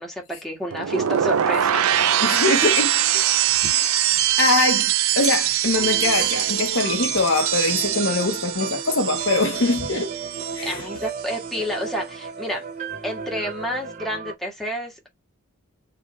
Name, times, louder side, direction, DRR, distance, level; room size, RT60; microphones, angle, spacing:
voice 1, 0.0-1.8 2.2-2.4 3.6-3.7 10.6-12.6 13.0-15.1, equal, ahead, 1.6 m, -30 dB
sound 1, 0.7-10.8 11.1-11.5, right 11 dB, 85° right, 0.5 m, -23 dB
voice 2, 2.2-2.9 3.7-3.9 4.4-10.1 10.5-10.9, left 3 dB, 60° left, 1.0 m, -23 dB
sound 2, 5.7-14.3, right 5 dB, 40° right, 0.8 m, -34 dB
4.9 x 3.0 x 3.0 m
head